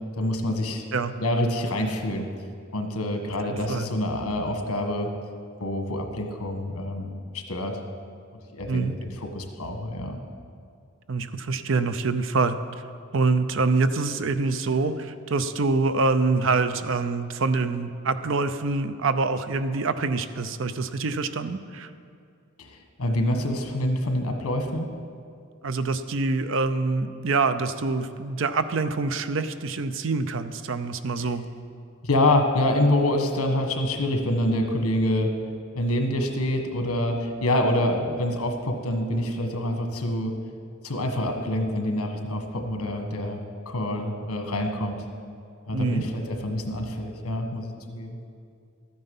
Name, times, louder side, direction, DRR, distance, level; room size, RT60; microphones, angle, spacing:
voice 1, 0.1-0.9 1.2-2.3 2.7-5.1 5.6-7.8 8.5-10.2 22.6-24.9 31.2-31.3 32.0-35.3 35.7-40.3 40.8-45.0 45.7-48.2, left 1 dB, 80° left, 4 dB, 1.4 m, -26 dB
voice 2, 3.5-3.9 8.7-9.0 11.1-12.6 13.1-21.9 25.6-31.4 45.7-46.0, right 3 dB, 60° right, 11 dB, 0.5 m, -25 dB
13.0 x 9.5 x 5.4 m, 2.4 s
head